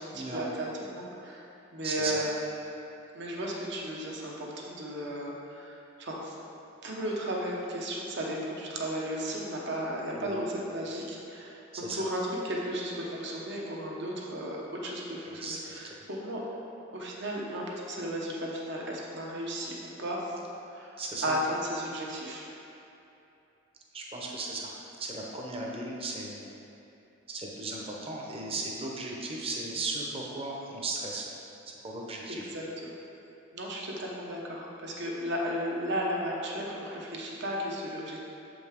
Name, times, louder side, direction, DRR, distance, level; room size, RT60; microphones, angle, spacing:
voice 1, 0.0-1.4 1.7-2.3 3.1-6.3 6.8-14.6 14.8-16.4 16.9-20.3 20.7-20.9 21.2-22.4 32.5-32.9 33.5-38.2, equal, 60° right, -2 dB, 1.0 m, -34 dB
voice 2, 1.8-2.2 10.1-10.4 11.7-12.1 15.3-16.0 21.0-21.4 23.9-24.7 25.0-26.4 27.3-31.3 31.8-32.5, right 2 dB, 30° right, -2 dB, 0.8 m, -36 dB
7.3 x 5.2 x 3.6 m, 2.8 s
head